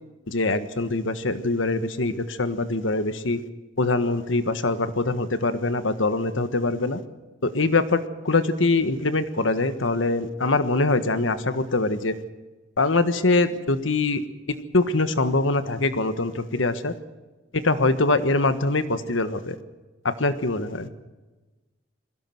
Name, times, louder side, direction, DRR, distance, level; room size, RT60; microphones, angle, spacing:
voice 1, 0.3-3.4 3.8-7.0 7.4-12.2 12.8-14.2 14.5-16.9 17.5-19.6 20.0-20.9, left 2 dB, 85° left, 11 dB, 1.5 m, -23 dB
22.0 x 17.0 x 7.9 m, 1.2 s
head